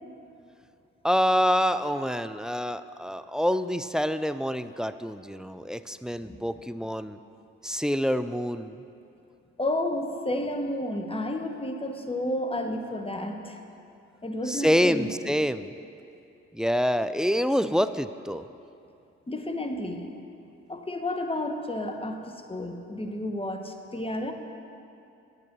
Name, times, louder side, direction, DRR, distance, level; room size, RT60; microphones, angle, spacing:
voice 1, 1.0-7.2 7.6-8.8 14.5-15.7 16.5-18.4, equal, ahead, 12 dB, 0.3 m, -26 dB
voice 2, 9.6-13.6 14.2-15.4 19.3-20.1 20.7-24.3, left 1 dB, 20° left, 5 dB, 1.1 m, -31 dB
9.5 x 7.2 x 6.0 m, 2.7 s
hypercardioid pair, 45°, 30 cm